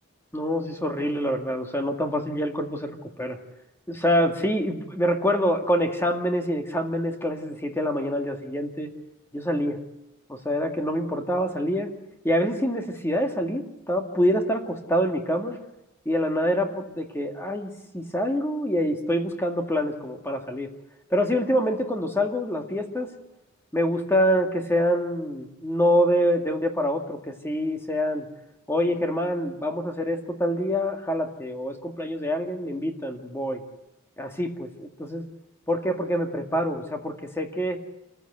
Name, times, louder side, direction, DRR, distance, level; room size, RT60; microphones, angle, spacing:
voice 1, 0.3-3.4 3.9-8.9 9.3-9.8 10.3-11.9 12.2-15.6 16.1-20.7 21.1-23.1 23.7-28.3 28.7-33.6 34.2-35.2 35.7-37.8, equal, 10° left, 4 dB, 2.1 m, -26 dB
26.5 x 15.5 x 8.0 m, 0.93 s
head